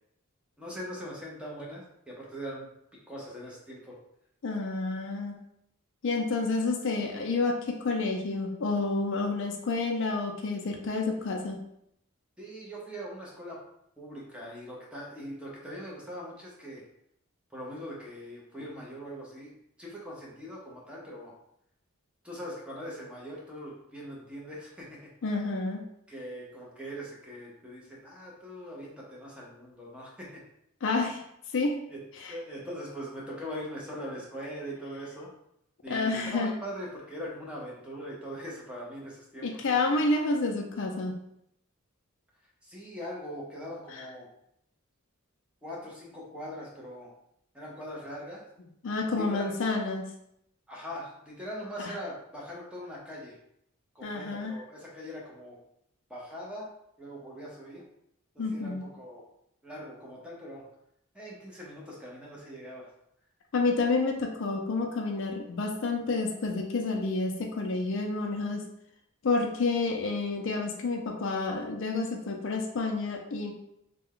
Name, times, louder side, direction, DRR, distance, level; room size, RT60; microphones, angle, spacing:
voice 1, 0.6-2.7 3.1-4.0 12.4-13.6 14.0-16.8 17.5-19.5 19.8-21.3 22.2-25.0 26.1-30.4 31.9-32.0 32.3-35.3 35.8-39.8 42.6-44.3 45.6-47.1 47.5-48.4 49.1-49.5 50.7-53.4 53.9-55.6 56.1-56.7 57.0-57.8 58.3-59.2 59.6-60.6 61.1-62.9, equal, 5° right, -4 dB, 0.8 m, -41 dB
voice 2, 4.4-5.4 6.0-11.6 25.2-25.8 30.8-31.2 31.5-31.8 32.2-32.3 35.9-36.5 39.4-41.2 43.9-44.1 48.8-50.0 51.8-51.9 54.0-54.6 58.4-58.8 63.5-68.6 69.2-73.5, left 3 dB, 60° left, 2 dB, 0.4 m, -29 dB
3.3 x 2.2 x 3.6 m, 0.76 s
head